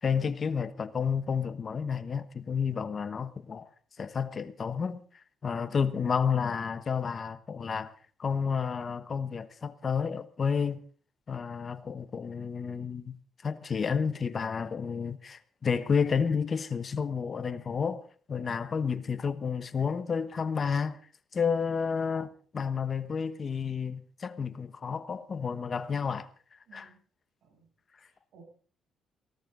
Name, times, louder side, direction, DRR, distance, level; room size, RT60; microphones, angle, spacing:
voice 1, 0.0-3.7 4.0-7.9 8.2-10.8 11.3-13.2 13.4-21.0 21.3-26.3 26.7-26.9, left 6 dB, 40° left, 1.2 m, -31 dB
voice 2, 2.7-3.0 5.5-5.8 18.3-18.7 21.3-21.4 26.7-27.0 27.4-27.7 28.0-28.4, right 6 dB, 75° right, 7.8 m, -58 dB
18.5 x 17.0 x 3.9 m
cardioid pair, 90°, 0 cm